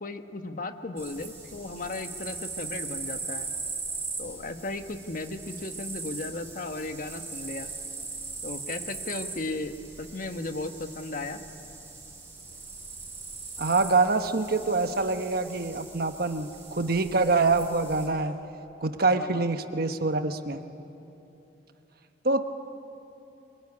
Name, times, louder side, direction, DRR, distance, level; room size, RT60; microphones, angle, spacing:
voice 1, 0.0-3.5 4.2-7.7 8.4-11.4 19.1-19.5, left 2 dB, 50° left, 7 dB, 1.3 m, -36 dB
sound 1, 1.0-18.1, right 4 dB, 15° right, 6.8 m, -40 dB
voice 2, 13.6-18.4 18.8-20.6 22.2-22.4, right 3 dB, 60° right, 8 dB, 1.2 m, -25 dB
24.5 x 22.5 x 9.9 m, 3.0 s
head